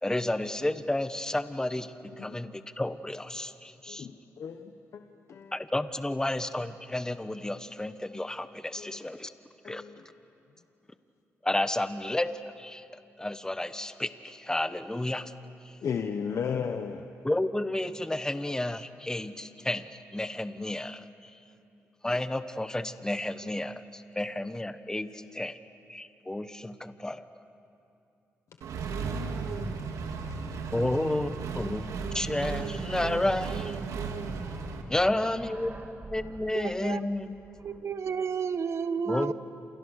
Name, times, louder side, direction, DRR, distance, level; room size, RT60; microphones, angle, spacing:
voice 1, 0.0-4.1 5.5-9.3 9.6-9.8 11.4-12.3 12.6-12.8 13.2-15.3 17.2-19.9 20.1-21.1 22.0-25.6 25.9-27.3 30.7-33.8 34.9-37.4 39.0-39.3, left 1 dB, 10° left, 11 dB, 1.2 m, -31 dB
voice 2, 2.2-2.5 3.9-5.6 8.8-9.1 9.6-10.1 15.8-17.1 29.3-30.5, left 6 dB, 65° left, 6 dB, 1.1 m, -36 dB
Accelerating revving vroom, 28.6-34.8, right 5 dB, 85° right, 2.2 m, -35 dB
sound 1, 33.6-37.8, right 2 dB, 35° right, 2.6 m, -49 dB
voice 3, 36.5-37.0 37.6-39.3, right 6 dB, 55° right, 12 dB, 1.2 m, -31 dB
28.5 x 28.5 x 6.6 m, 2.7 s
cardioid pair, 80°, 5 cm